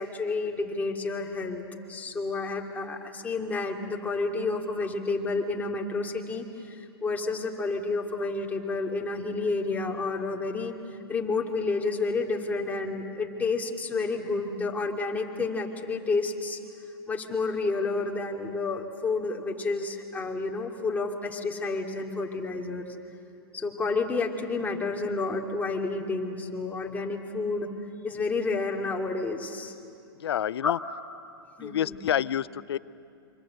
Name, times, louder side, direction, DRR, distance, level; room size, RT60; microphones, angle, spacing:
voice 1, 0.0-1.6 1.9-10.7 11.1-16.6 17.1-23.0 23.5-27.7 28.0-29.7 30.6-30.7 31.6-31.9, left 3 dB, 10° left, 0 dB, 2.5 m, -30 dB
voice 2, 30.2-30.8 31.6-32.8, left 10 dB, 85° left, 19 dB, 0.5 m, -28 dB
27.0 x 25.0 x 7.9 m, 2.6 s
hypercardioid pair, 120°, 13 cm